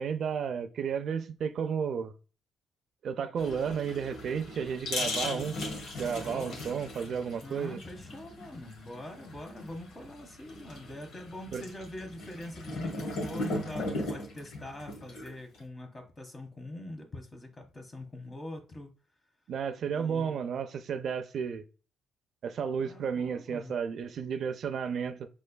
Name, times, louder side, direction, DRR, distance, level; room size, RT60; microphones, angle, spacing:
voice 1, 0.0-2.1 3.0-5.6 6.0-7.8 11.5-11.6 19.5-21.6 22.4-25.3, right 7 dB, 60° right, 0.4 m, -32 dB
sound 1, 3.4-15.6, left 2 dB, 75° left, 1.1 m, -38 dB
voice 2, 6.1-6.6 7.3-18.9 19.8-20.4 22.8-23.7, left 1 dB, 30° left, 1.1 m, -43 dB
5.6 x 3.2 x 2.2 m
cardioid pair, 90°, 0 cm